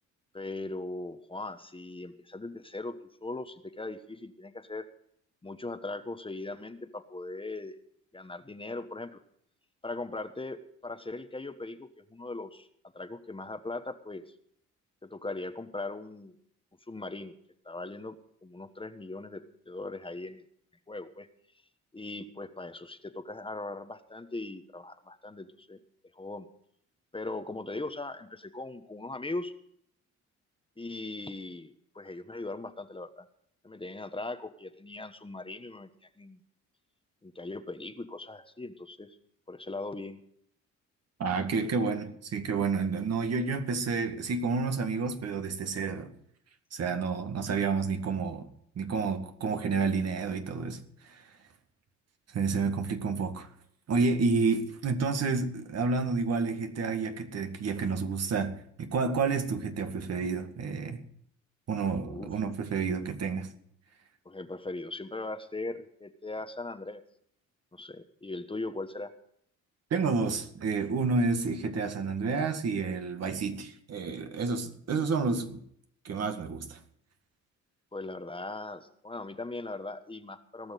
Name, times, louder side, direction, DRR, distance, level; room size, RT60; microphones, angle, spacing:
voice 1, 0.3-3.0 3.2-4.8 5.4-7.7 8.1-9.2 9.8-12.7 12.9-14.2 15.0-16.3 16.9-17.3 17.6-18.1 18.4-20.4 20.9-21.3 21.9-25.8 26.1-26.5 27.1-29.5 30.8-33.3 33.6-36.4 37.2-39.2 39.5-40.2 62.0-62.3 64.2-67.0 67.7-69.1 77.9-80.7, left 2 dB, 15° left, 1.2 m, -39 dB
voice 2, 41.2-46.1 46.7-48.5 48.8-51.2 52.3-53.5 53.9-61.0 61.7-63.5 69.9-75.6 76.0-76.8, right 4 dB, 55° right, 1.9 m, -30 dB
18.0 x 6.4 x 9.2 m
cardioid pair, 90°, 30 cm